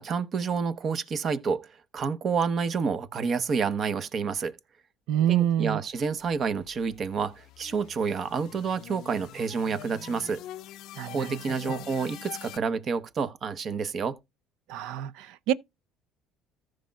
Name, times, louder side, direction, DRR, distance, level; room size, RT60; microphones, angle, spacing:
voice 1, 0.0-4.6 5.3-10.4 11.1-14.2, right 5 dB, 40° right, 0.9 m, -29 dB
voice 2, 5.1-5.8 11.0-11.4 11.7-11.8 14.7-15.5, right 11 dB, 75° right, 0.5 m, -27 dB
sound 1, 6.2-12.6, left 14 dB, 70° left, 0.4 m, -45 dB
14.5 x 6.4 x 2.3 m
cardioid pair, 105°, 0 cm